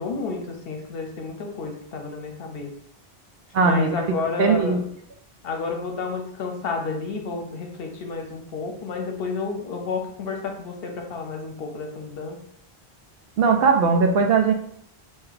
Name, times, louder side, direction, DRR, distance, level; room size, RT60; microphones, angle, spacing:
voice 1, 0.0-2.7 3.6-4.8 5.4-12.4, left 4 dB, 65° left, 3 dB, 0.9 m, -31 dB
voice 2, 3.5-4.8 13.4-14.5, right 5 dB, 70° right, 3 dB, 0.8 m, -19 dB
2.8 x 2.7 x 3.9 m, 0.65 s
omnidirectional pair, 1.1 m